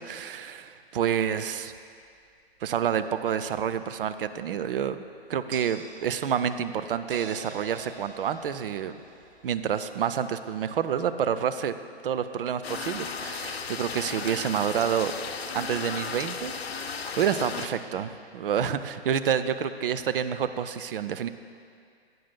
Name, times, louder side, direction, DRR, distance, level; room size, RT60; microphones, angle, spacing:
voice 1, 0.0-1.7 2.6-5.0 5.3-9.0 9.4-11.7 12.0-15.1 15.5-21.3, right 8 dB, 60° right, 11 dB, 0.5 m, -28 dB
sound 1, 5.5-9.9, right 4 dB, 25° right, 0.7 m, -45 dB
sound 2, 12.6-17.7, left 5 dB, 75° left, 0.6 m, -35 dB
13.0 x 9.2 x 2.3 m, 2.3 s
figure-of-eight pair, 120°, 31 cm